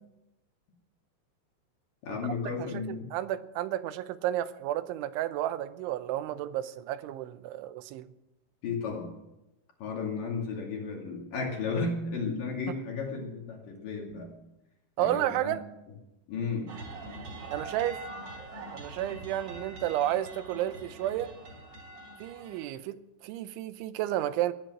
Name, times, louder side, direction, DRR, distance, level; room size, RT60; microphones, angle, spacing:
voice 1, 2.0-3.1 8.6-9.1 9.8-14.3 15.0-15.5 16.3-16.7, left 4 dB, 50° left, 0 dB, 3.7 m, -34 dB
voice 2, 2.6-8.1 15.0-15.6 17.5-18.0 18.7-21.3 22.2-23.0 23.2-24.5, right 13 dB, 90° right, 12 dB, 3.2 m, -32 dB
sound 1, 16.7-22.6, right 2 dB, 35° right, 2.9 m, -43 dB
20.0 x 10.5 x 6.3 m, 0.91 s
omnidirectional pair, 5.4 m